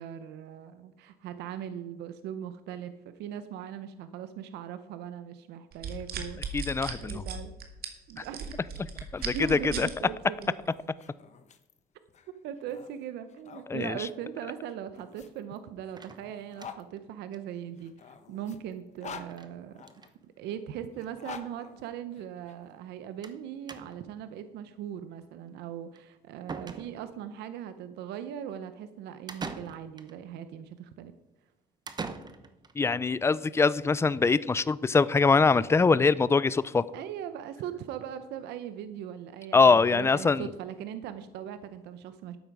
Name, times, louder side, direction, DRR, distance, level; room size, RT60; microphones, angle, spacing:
voice 1, 0.0-7.6 8.1-8.6 9.3-10.6 12.4-19.8 20.2-31.1 36.9-42.4, right 9 dB, 85° right, 11 dB, 0.8 m, -40 dB
sound 1, 5.7-9.9 10.4-10.7, right 6 dB, 65° right, 1.9 m, -36 dB
voice 2, 6.5-7.2 8.2-8.3 9.1-9.9 13.7-14.0 32.8-36.8 39.5-40.5, left 4 dB, 15° left, 18 dB, 0.4 m, -23 dB
sound 2, 9.0-13.7 14.6-16.8 17.7-20.1 20.9-22.5, left 7 dB, 45° left, 1.1 m, -48 dB
Cheap hollow wooden bathroom door open and close, 16.0-17.0 17.3-17.4 17.7-17.8 18.0-18.1 19.3-19.5 19.8-20.2 21.0-21.1 21.4-21.5 23.2-23.4 23.7-24.2 26.0-26.1 26.5-27.3 29.3-30.2 31.9-32.7, right 4 dB, 25° right, 0.9 m, -42 dB
12.5 x 9.0 x 4.8 m, 0.98 s
cardioid pair, 110°, 17 cm